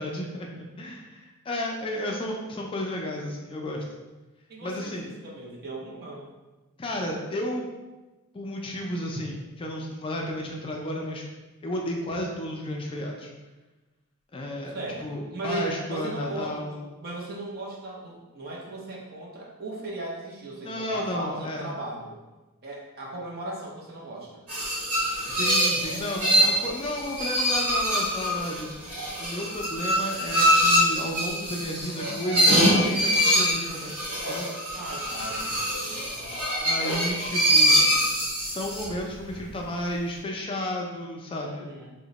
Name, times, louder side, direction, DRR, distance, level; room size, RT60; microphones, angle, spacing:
voice 1, 0.0-3.8 4.6-5.1 6.8-7.7 8.3-11.2 11.6-13.3 14.3-16.8 20.6-21.7 25.3-34.5 36.6-38.0 38.3-41.7, left 1 dB, 25° left, 0 dB, 0.3 m, -33 dB
voice 2, 4.5-5.0 5.2-6.2 14.7-22.1 22.6-24.4 26.4-26.6 34.7-35.4 35.8-36.3 41.4-41.9, right 2 dB, 45° right, -2 dB, 0.7 m, -37 dB
sound 1, 24.5-39.0, equal, 70° right, 1.3 m, -24 dB
2.8 x 2.1 x 3.9 m, 1.1 s
head